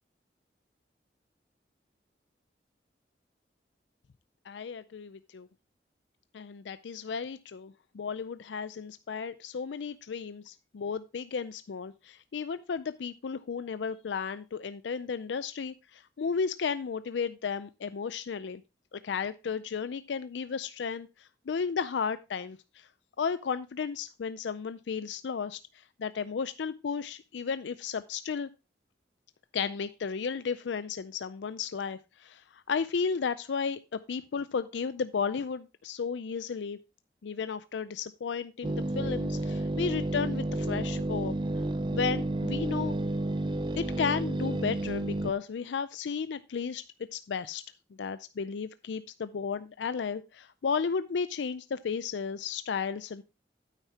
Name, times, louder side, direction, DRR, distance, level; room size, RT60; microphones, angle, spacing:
voice 1, 4.5-5.5 6.3-18.6 18.9-22.9 23.2-25.6 26.0-28.5 29.5-36.8 37.2-41.3 41.9-42.9 43.8-46.8 47.1-47.6 48.0-53.2, left 6 dB, 85° left, 13 dB, 0.4 m, -34 dB
sound 1, 38.6-45.3, right 1 dB, 25° right, 0.4 m, -31 dB
9.1 x 9.1 x 2.8 m, 0.27 s
head